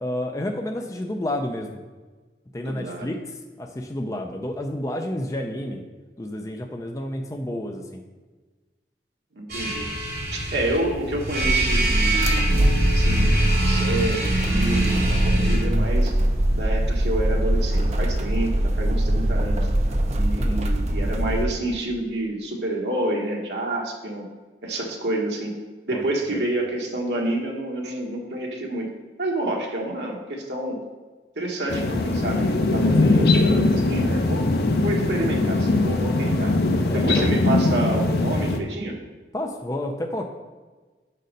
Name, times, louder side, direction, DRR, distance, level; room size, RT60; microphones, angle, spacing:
voice 1, 0.0-1.8 2.5-3.2 3.6-5.8 6.2-8.0 20.4-20.6 25.9-26.0 26.3-26.4 33.0-33.6 36.9-37.3 39.3-40.3, left 1 dB, 20° left, 3 dB, 0.5 m, -30 dB
voice 2, 2.6-3.1 9.4-9.9 10.3-12.5 12.9-16.2 16.5-19.7 20.1-24.3 24.6-25.5 25.9-28.9 29.2-30.8 31.4-34.5 34.8-36.5 36.9-38.9, right 1 dB, 75° right, 0 dB, 1.3 m, -28 dB
sound 1, 9.5-15.6, right 1 dB, 60° right, 2.7 m, -24 dB
sound 2, 11.4-21.5, right 1 dB, 40° right, 0.6 m, -22 dB
sound 3, 31.7-38.6, left 2 dB, 65° left, 0.6 m, -21 dB
6.5 x 5.3 x 5.2 m, 1.3 s
head